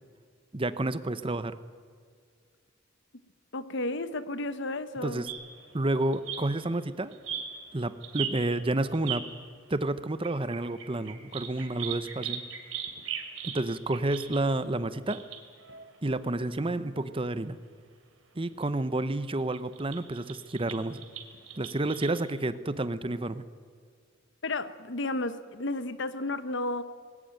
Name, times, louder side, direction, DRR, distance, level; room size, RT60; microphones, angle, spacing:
voice 1, 0.5-1.6 5.0-5.3 5.7-7.1 7.7-9.3 9.7-12.4 13.4-15.2 16.0-17.6 18.3-21.0 21.6-23.5, right 2 dB, 25° right, 13 dB, 0.8 m, -30 dB
voice 2, 3.5-5.2 24.4-26.8, left 2 dB, 60° left, 13 dB, 1.0 m, -32 dB
sound 1, 5.3-9.4 10.0-16.2 16.5-16.7 17.1-17.2 18.5-18.6 19.4-22.1, right 8 dB, 75° right, 3.2 m, -39 dB
20.0 x 18.5 x 9.0 m, 2.1 s
head